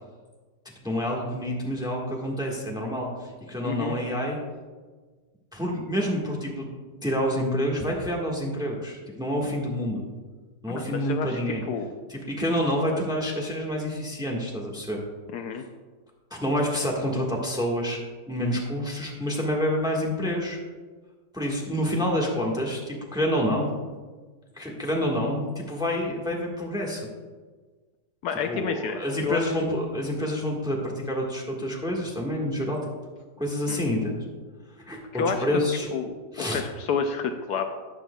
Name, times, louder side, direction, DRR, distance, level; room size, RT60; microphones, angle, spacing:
voice 1, 0.8-3.1 3.5-4.4 5.5-6.7 7.0-10.0 10.6-11.6 12.1-15.0 16.3-18.0 18.3-20.6 21.3-23.7 24.6-27.0 28.5-32.8 33.4-34.2 34.8-35.9 36.3-36.6, equal, 5° right, -1 dB, 1.2 m, -28 dB
voice 2, 3.6-4.0 10.7-11.9 15.3-15.6 28.2-29.4 33.7-33.8 35.1-35.5 35.9-37.6, left 6 dB, 75° left, 6 dB, 1.1 m, -30 dB
12.5 x 8.9 x 2.3 m, 1.4 s
omnidirectional pair, 1.9 m